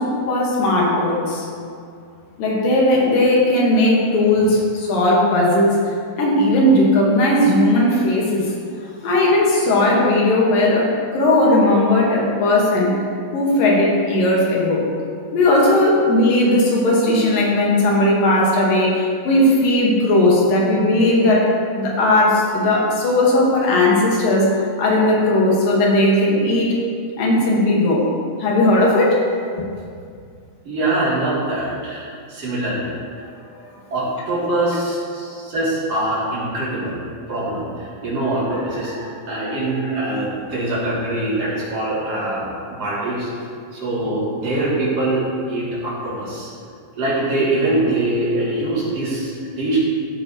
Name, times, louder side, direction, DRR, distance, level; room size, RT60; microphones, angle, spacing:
voice 1, 0.0-1.5 2.4-5.8 6.2-8.5 9.0-13.0 13.3-14.9 15.3-21.5 21.8-26.7 27.2-28.1 28.4-29.3 33.5-33.6, left 1 dB, 75° left, -3 dB, 3.3 m, -17 dB
voice 2, 30.6-32.9 33.9-37.0 37.3-43.3 43.7-46.5 47.0-49.8, right 2 dB, 45° right, -8 dB, 3.7 m, -23 dB
15.0 x 9.1 x 3.1 m, 2.3 s
omnidirectional pair, 4.1 m